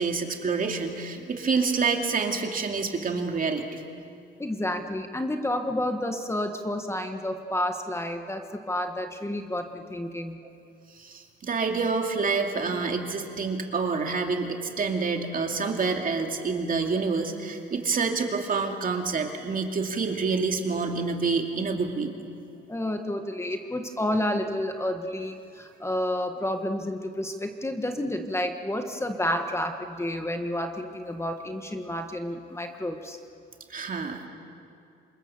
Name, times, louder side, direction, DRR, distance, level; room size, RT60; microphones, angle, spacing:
voice 1, 0.0-3.7 10.4-10.5 11.0-22.1 33.7-34.3, right 4 dB, 45° right, 3 dB, 2.6 m, -27 dB
voice 2, 4.4-10.4 22.7-33.2, left 1 dB, 15° left, 6 dB, 1.5 m, -30 dB
26.5 x 21.5 x 7.2 m, 2.4 s
cardioid pair, 90°, 20 cm